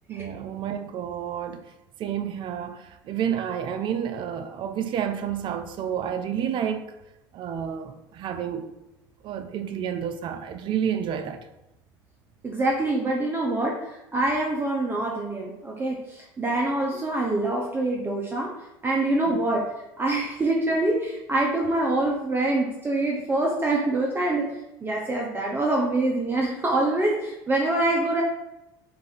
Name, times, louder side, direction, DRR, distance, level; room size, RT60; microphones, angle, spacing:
voice 1, 0.1-1.6 2.0-6.9 7.3-8.7 9.2-11.4 19.3-19.4, right 8 dB, 50° right, 0.5 m, -30 dB
voice 2, 12.4-18.5 18.8-19.7 20.0-24.5 24.8-28.2, right 2 dB, 20° right, 0.8 m, -25 dB
4.7 x 2.6 x 4.0 m
hypercardioid pair, 85°, 10 cm